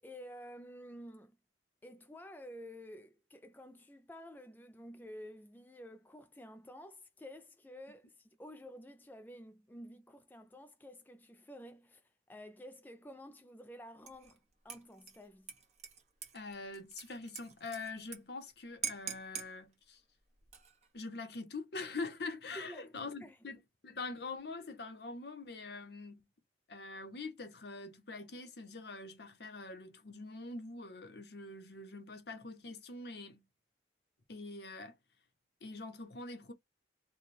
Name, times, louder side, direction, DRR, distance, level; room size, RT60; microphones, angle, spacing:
voice 1, 0.0-1.4 1.8-15.5 22.6-23.6, equal, 10° left, 0.3 m, -51 dB
Dishes pots and pans / Liquid, 14.1-14.4 14.7-18.2 18.5-18.6 18.8-19.5 20.4-20.9, right 7 dB, 40° right, 1.1 m, -44 dB
voice 2, 16.3-20.0 20.9-26.3 26.7-33.4 34.3-35.0 35.6-36.5, left 3 dB, 60° left, 0.8 m, -44 dB
3.2 x 2.2 x 4.2 m
head